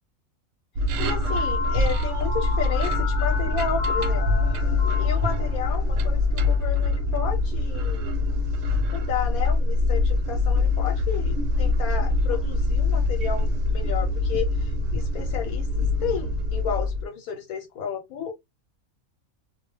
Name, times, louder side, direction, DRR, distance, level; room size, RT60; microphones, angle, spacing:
sound 1, 0.8-17.0, left 2 dB, 70° right, 0.9 m, -24 dB
voice 1, 1.0-4.3 4.9-8.1 8.9-18.3, left 7 dB, 85° left, 1.1 m, -32 dB
sound 2, 1.0-6.1, left 4 dB, 40° left, 0.8 m, -32 dB
2.3 x 2.1 x 3.0 m
omnidirectional pair, 1.5 m